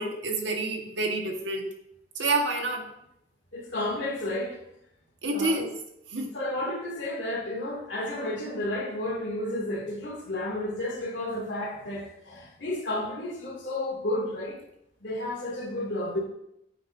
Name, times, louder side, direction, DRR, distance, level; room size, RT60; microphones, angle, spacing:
voice 1, 0.0-1.7 2.2-2.8 5.2-5.7 6.1-6.3, right 2 dB, 85° right, 1 dB, 1.6 m, -28 dB
voice 2, 3.5-4.6 5.3-5.6 6.3-14.6 15.0-16.2, left 1 dB, 80° left, -1 dB, 2.5 m, -32 dB
9.6 x 8.3 x 2.7 m, 0.78 s
head